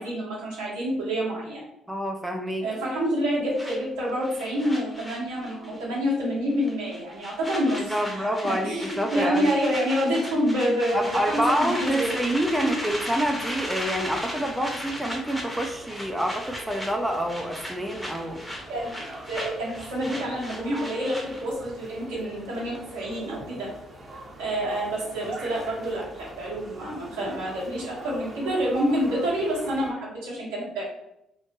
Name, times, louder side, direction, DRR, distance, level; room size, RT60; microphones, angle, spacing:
voice 1, 0.0-1.6 2.6-12.1 18.7-19.0 19.3-23.7 24.4-30.8, equal, 80° right, -5 dB, 1.0 m, -27 dB
voice 2, 1.9-2.7 7.8-9.5 10.9-18.4, equal, 10° right, 3 dB, 0.4 m, -27 dB
sound 1, 3.6-5.8 6.1-6.3 6.6-21.5, equal, 5° left, 0.9 m, -36 dB
sound 2, 10.9-29.9, right 1 dB, 35° right, 0.7 m, -43 dB
3.0 x 2.1 x 2.8 m, 0.83 s
hypercardioid pair, 50°, 0 cm